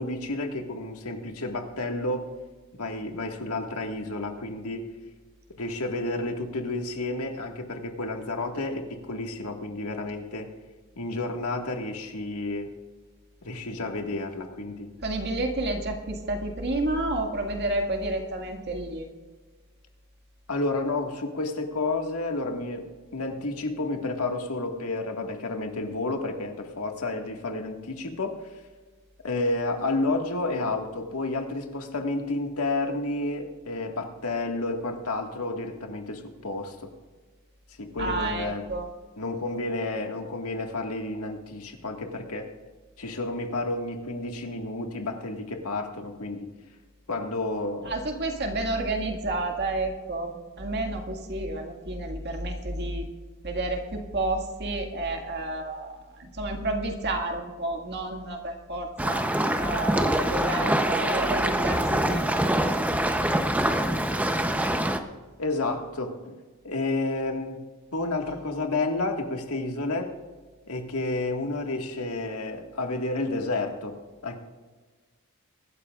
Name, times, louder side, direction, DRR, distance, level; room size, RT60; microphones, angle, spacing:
voice 1, 0.0-2.3 2.8-4.9 5.6-10.5 11.0-12.7 13.4-14.9 20.5-28.4 29.2-36.9 37.8-38.7 39.2-42.5 43.0-46.5 47.1-47.9 65.4-66.3 66.6-67.6 67.9-70.1 70.7-74.4, left 2 dB, 85° left, 3 dB, 1.8 m, -31 dB
voice 2, 15.0-19.1 38.0-38.9 47.8-53.1 53.4-59.2 59.6-62.4, right 2 dB, 50° right, 3 dB, 2.0 m, -30 dB
sound 1, 59.0-65.0, right 1 dB, 5° right, 0.7 m, -25 dB
24.0 x 12.5 x 2.5 m, 1.3 s
head